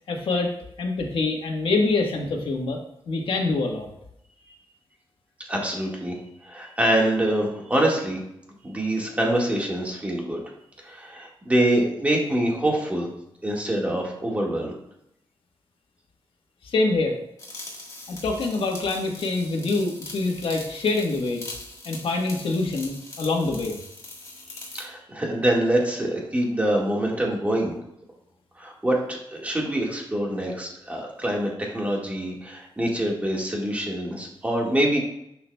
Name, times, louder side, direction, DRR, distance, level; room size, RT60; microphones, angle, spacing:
voice 1, 0.1-0.5 0.8-2.8 3.1-3.9 16.6-17.2 18.1-21.4 21.8-23.8, left 3 dB, 80° left, 1 dB, 1.3 m, -25 dB
voice 2, 5.5-6.2 6.4-8.2 8.6-10.4 10.8-13.1 13.4-14.7 24.7-27.7 28.6-35.0, right 1 dB, 15° right, -2 dB, 1.7 m, -25 dB
sound 1, 17.4-24.9, left 2 dB, 35° left, 1.5 m, -41 dB
11.0 x 5.8 x 2.3 m, 0.78 s
wide cardioid pair, 140°, 9 cm